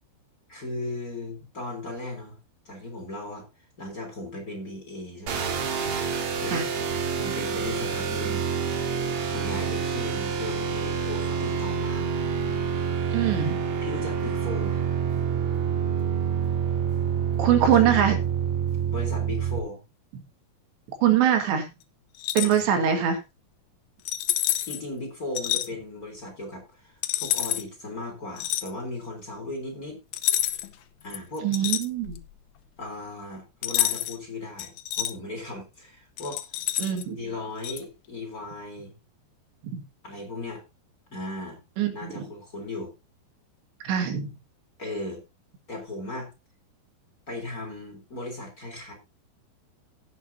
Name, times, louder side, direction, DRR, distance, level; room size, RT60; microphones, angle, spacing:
voice 1, 0.5-2.4 2.7-3.4 3.8-5.4 6.1-6.7 7.1-8.8 9.3-12.1 13.4-13.5 13.8-14.8 17.6-17.9 18.9-19.8 22.4-23.1 24.7-30.0 31.0-31.5 32.8-36.5 37.1-38.9 40.0-40.6 41.1-41.6 41.9-42.9 44.8-45.2 45.7-46.3 47.3-48.9, left 2 dB, 20° left, 1 dB, 3.6 m, -37 dB
sound 1, 5.3-19.6, right 7 dB, 55° right, 2.2 m, -27 dB
voice 2, 13.1-13.6 17.4-18.2 21.0-21.7 22.4-23.2 31.4-32.2 36.8-37.2 39.7-39.8 41.8-42.2 43.8-44.3, right 9 dB, 80° right, 6 dB, 4.0 m, -23 dB
sound 2, 22.2-22.6 24.1-24.8 25.4-25.7 27.0-27.6 28.4-28.7 30.1-30.8 31.1-32.3 33.6-34.2 34.6-35.1 36.2-37.0 37.6-37.8, left 14 dB, 75° left, 2.5 m, -28 dB
16.5 x 8.4 x 2.7 m, 0.25 s
omnidirectional pair, 5.0 m